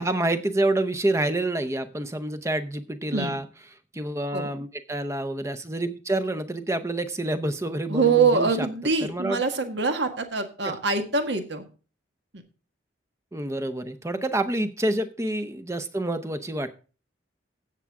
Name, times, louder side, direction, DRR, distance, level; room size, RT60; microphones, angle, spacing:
voice 1, 0.0-3.5 3.9-8.7 9.0-9.4 10.6-10.7 13.3-16.7, right 1 dB, 15° right, 11 dB, 0.7 m, -28 dB
voice 2, 7.9-11.6, right 4 dB, 65° right, 6 dB, 1.7 m, -24 dB
16.0 x 7.1 x 3.6 m, 0.36 s
head